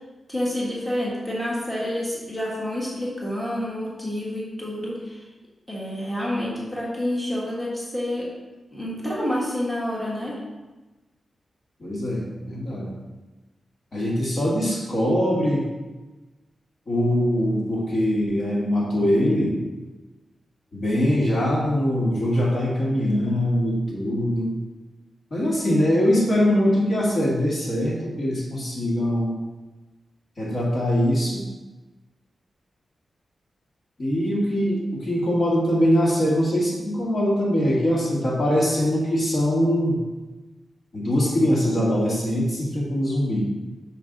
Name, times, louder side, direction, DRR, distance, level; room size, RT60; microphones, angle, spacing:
voice 1, 0.3-5.3 5.7-8.3 8.7-10.4, left 1 dB, ahead, -6 dB, 1.5 m, -28 dB
voice 2, 11.8-12.9 13.9-15.7 16.9-19.6 20.7-24.5 25.3-29.3 30.4-31.4 34.0-40.0 40.9-43.4, equal, 45° left, -5 dB, 1.7 m, -22 dB
5.6 x 5.5 x 3.9 m, 1.2 s
wide cardioid pair, 125°, 0 cm